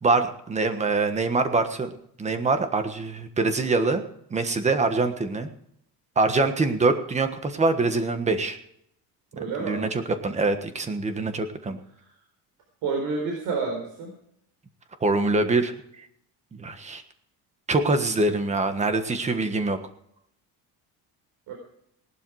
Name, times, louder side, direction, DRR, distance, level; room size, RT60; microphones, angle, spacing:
voice 1, 0.0-4.0 4.3-5.5 6.1-8.6 9.6-11.8 15.0-15.7 16.5-17.0 17.7-19.8, right 3 dB, 20° right, 8 dB, 1.4 m, -24 dB
voice 2, 9.3-9.9 12.8-14.1 21.5-21.6, right 4 dB, 70° right, 1 dB, 4.3 m, -29 dB
18.5 x 12.0 x 4.8 m, 0.71 s
cardioid pair, 170°, 38 cm